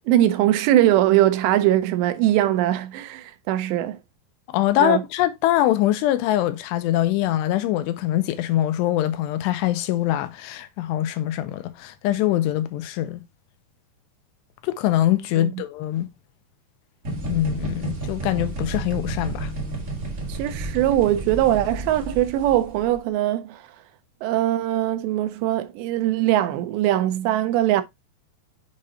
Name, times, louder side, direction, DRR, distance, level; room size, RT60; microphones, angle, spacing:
voice 1, 0.1-4.0 4.8-5.0 15.4-15.5 20.3-23.6 24.2-27.8, right 13 dB, 85° right, 2.9 m, -21 dB
voice 2, 4.5-13.2 14.6-16.1 17.3-19.5, left 13 dB, 90° left, 2.8 m, -23 dB
sound 1, 17.0-22.9, right 2 dB, 70° right, 0.7 m, -31 dB
7.6 x 4.9 x 2.7 m
omnidirectional pair, 4.9 m